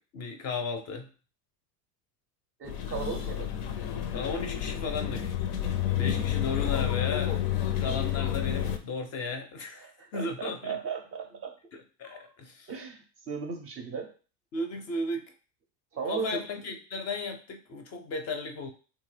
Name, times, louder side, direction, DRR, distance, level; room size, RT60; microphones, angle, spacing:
voice 1, 0.1-1.1 4.1-5.4 5.9-7.4 7.8-10.8 11.7-12.7 14.5-15.2 16.1-18.7, left 3 dB, 35° left, 5 dB, 0.4 m, -35 dB
voice 2, 2.6-3.5 9.8-11.5 12.0-12.3 12.7-14.1 15.9-16.5, right 5 dB, 30° right, 5 dB, 0.4 m, -36 dB
sound 1, 2.7-8.8, left 10 dB, 90° left, 0.6 m, -30 dB
3.1 x 2.2 x 3.2 m, 0.38 s
supercardioid pair, 105°, 46 cm